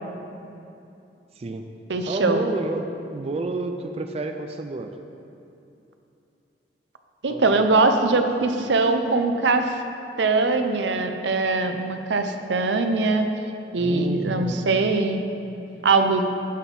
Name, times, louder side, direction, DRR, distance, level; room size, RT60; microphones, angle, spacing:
voice 1, 1.3-1.7 2.0-4.9 7.3-8.0 8.4-8.7 13.8-14.9, right 2 dB, 35° right, 6 dB, 0.4 m, -31 dB
voice 2, 1.9-2.4 7.2-9.7 10.2-13.3 13.7-15.2 15.8-16.2, right 3 dB, 80° right, 6 dB, 0.6 m, -21 dB
11.5 x 4.2 x 5.3 m, 2.7 s
head